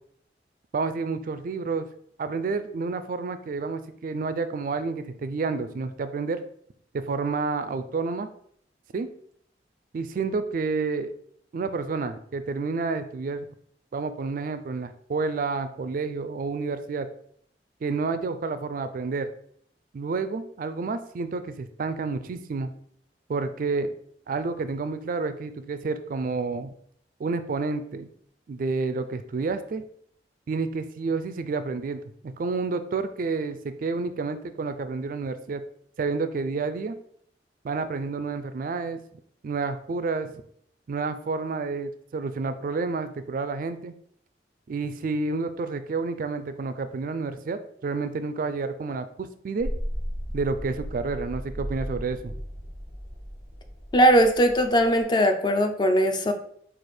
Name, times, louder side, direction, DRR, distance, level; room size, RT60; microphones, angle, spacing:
voice 1, 0.7-1.9 2.2-6.4 6.9-8.3 8.9-9.1 9.9-11.1 11.5-13.5 13.9-17.1 17.8-19.3 19.9-22.7 23.3-23.9 24.3-26.7 27.2-28.1 28.5-29.8 30.5-35.6 36.0-37.0 37.6-39.0 39.4-40.3 40.9-43.9 44.7-49.7 50.3-52.4, right 4 dB, 50° right, 11 dB, 0.3 m, -29 dB
sound 1, 49.6-55.0, equal, 50° left, 1.2 m, -35 dB
voice 2, 53.9-56.3, right 1 dB, 25° left, 7 dB, 0.4 m, -20 dB
4.7 x 2.4 x 4.3 m, 0.65 s
head